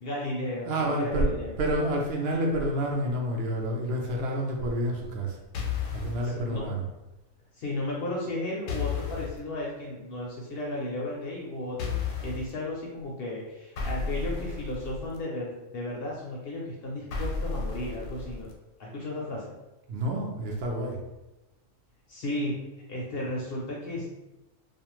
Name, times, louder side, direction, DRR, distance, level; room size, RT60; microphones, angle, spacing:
voice 1, 0.0-1.5 6.2-6.6 7.6-18.5 18.8-19.5 22.1-22.6 22.9-24.1, left 1 dB, 60° left, -3 dB, 0.6 m, -34 dB
voice 2, 0.6-1.3 1.6-5.4 5.9-6.8 19.9-21.0, right 1 dB, 65° right, 0 dB, 0.7 m, -28 dB
sound 1, 5.5-6.3 8.7-9.4 11.8-12.5 13.8-15.2 17.1-18.5, left 5 dB, 85° left, 1.0 m, -33 dB
2.4 x 2.3 x 2.9 m, 0.96 s
omnidirectional pair, 1.4 m